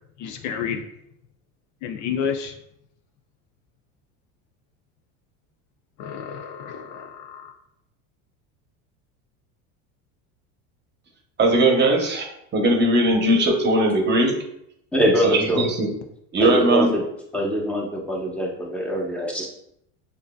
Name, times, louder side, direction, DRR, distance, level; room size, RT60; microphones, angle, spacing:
voice 1, 0.2-0.8 1.8-2.5 6.0-7.5, left 7 dB, 55° left, 0.5 m, -30 dB
voice 2, 11.4-12.3 12.5-14.3 15.2-15.9 16.3-16.9, right 1 dB, 30° right, 0.9 m, -19 dB
voice 3, 14.9-15.6 16.4-17.0 17.3-19.5, equal, 5° left, 1.0 m, -23 dB
6.4 x 2.6 x 2.3 m
supercardioid pair, 110°, 37 cm